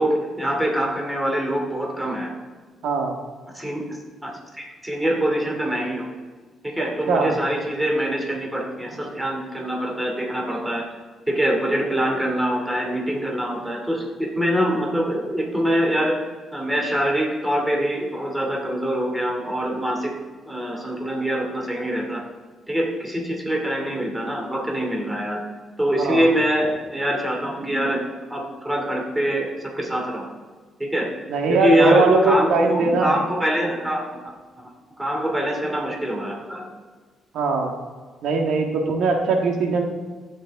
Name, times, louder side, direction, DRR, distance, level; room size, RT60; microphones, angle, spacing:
voice 1, 0.0-2.3 3.5-6.1 6.6-10.9 11.3-16.2 16.5-20.1 20.5-22.2 22.7-25.4 25.8-28.0 28.3-30.3 30.8-31.1 31.5-34.1 35.0-36.7, equal, 10° right, 0 dB, 2.6 m, -24 dB
voice 2, 2.8-3.1 7.1-7.3 26.0-26.3 31.3-33.1 37.3-37.7 38.2-39.8, right 4 dB, 75° right, 3 dB, 1.6 m, -20 dB
15.5 x 6.7 x 3.6 m, 1.4 s
cardioid pair, 90°, 0 cm